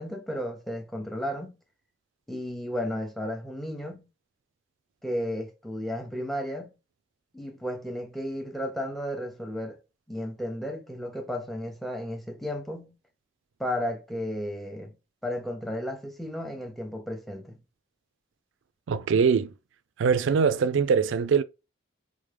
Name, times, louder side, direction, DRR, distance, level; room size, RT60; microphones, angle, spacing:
voice 1, 0.0-1.6 2.3-4.1 5.0-6.7 7.3-9.8 10.1-12.9 13.6-14.9 15.2-17.6, equal, ahead, 0.5 m, -33 dB
voice 2, 18.9-19.5 20.0-21.4, right 6 dB, 80° right, 0.4 m, -22 dB
4.6 x 2.1 x 3.3 m
head